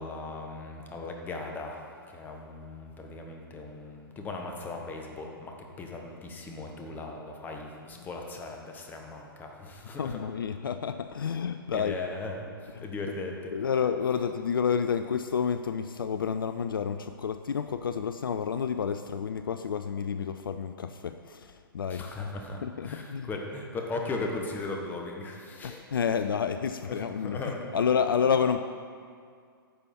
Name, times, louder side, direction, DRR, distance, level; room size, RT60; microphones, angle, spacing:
voice 1, 0.0-10.2 11.2-11.3 11.7-13.5 21.9-26.0 26.8-27.9, left 3 dB, 15° left, 2 dB, 1.1 m, -38 dB
voice 2, 10.0-12.0 12.8-12.9 13.5-22.1 22.6-23.3 25.6-27.4 27.7-28.6, left 7 dB, 65° left, 9 dB, 0.4 m, -29 dB
10.5 x 7.0 x 4.3 m, 2.2 s
figure-of-eight pair, 120°, 12 cm